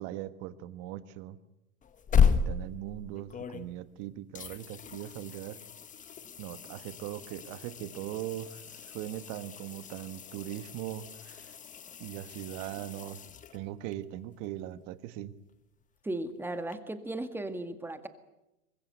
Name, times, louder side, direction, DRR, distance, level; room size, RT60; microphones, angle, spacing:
voice 1, 0.0-1.4 2.1-5.6 6.4-11.6 12.0-13.2 13.5-15.3, right 13 dB, 40° right, 13 dB, 1.5 m, -40 dB
sound 1, 1.8-4.0 4.3-13.9 16.7-16.8, left 6 dB, 15° left, 1.4 m, -34 dB
voice 2, 16.0-18.1, right 1 dB, 5° right, 9 dB, 2.0 m, -36 dB
24.5 x 21.0 x 8.3 m, 0.94 s
hypercardioid pair, 120°, 45 cm